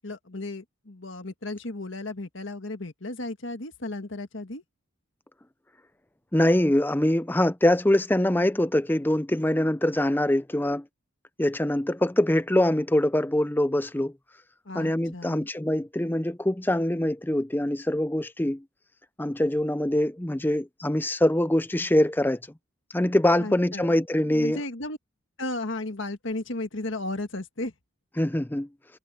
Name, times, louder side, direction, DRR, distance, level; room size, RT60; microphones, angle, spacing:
voice 1, 0.0-4.6 14.7-15.5 23.4-23.9 24.3-25.0 25.4-27.7, left 2 dB, 60° left, 1.8 m, -34 dB
voice 2, 6.3-10.8 11.4-14.1 14.7-18.6 19.2-22.4 22.9-24.6 28.2-28.7, left 1 dB, 10° left, 0.5 m, -24 dB
head